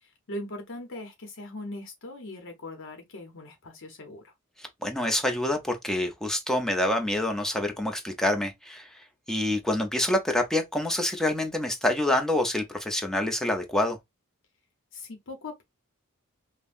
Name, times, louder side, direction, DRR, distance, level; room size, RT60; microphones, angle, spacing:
voice 1, 0.0-4.3 14.9-15.6, left 1 dB, 60° left, 0.8 m, -40 dB
voice 2, 4.6-14.0, left 1 dB, ahead, 0.7 m, -27 dB
5.3 x 2.1 x 2.5 m
head